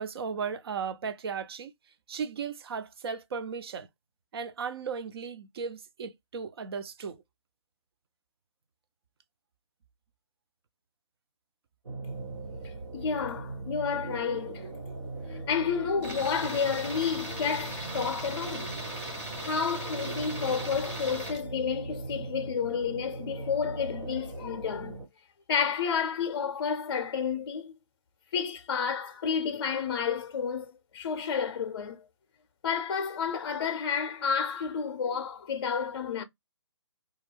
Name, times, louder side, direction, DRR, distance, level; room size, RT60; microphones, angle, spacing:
voice 1, 0.0-1.7 2.1-3.9 4.3-7.2, right 6 dB, 55° right, 0.5 m, -36 dB
sound 1, 11.8-25.1, right 3 dB, 85° right, 1.2 m, -40 dB
voice 2, 12.6-14.7 15.0-18.7 19.4-25.0 25.5-27.7 28.3-32.1 32.6-36.2, left 6 dB, 50° left, 0.5 m, -31 dB
Tools, 16.0-21.4, right 1 dB, 10° right, 0.6 m, -38 dB
2.3 x 2.1 x 3.1 m
hypercardioid pair, 155°, 16 cm